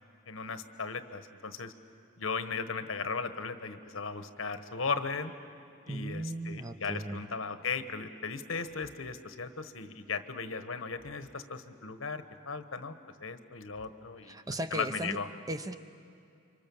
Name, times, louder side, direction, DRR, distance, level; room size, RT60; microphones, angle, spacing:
voice 1, 0.3-1.7 2.2-5.3 5.9-12.9 13.2-14.4 14.7-15.3, left 5 dB, 85° left, 10 dB, 1.3 m, -37 dB
voice 2, 5.9-7.2 14.2-15.2 15.5-15.8, right 1 dB, 20° right, 9 dB, 0.8 m, -37 dB
29.5 x 25.5 x 7.2 m, 2.4 s
head